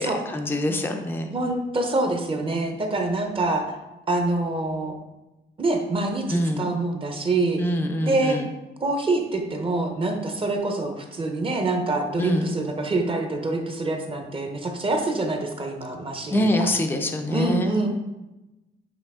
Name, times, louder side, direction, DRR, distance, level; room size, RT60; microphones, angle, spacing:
voice 1, 0.0-1.3 6.3-6.7 7.6-8.5 12.2-12.6 16.3-17.7, left 1 dB, 10° left, 4 dB, 0.5 m, -25 dB
voice 2, 1.3-3.7 4.1-5.0 5.6-7.6 8.0-8.4 8.8-16.7 17.3-17.9, right 2 dB, 25° right, 3 dB, 0.8 m, -25 dB
8.0 x 3.4 x 3.6 m, 1.0 s
cardioid pair, 150°, 20 cm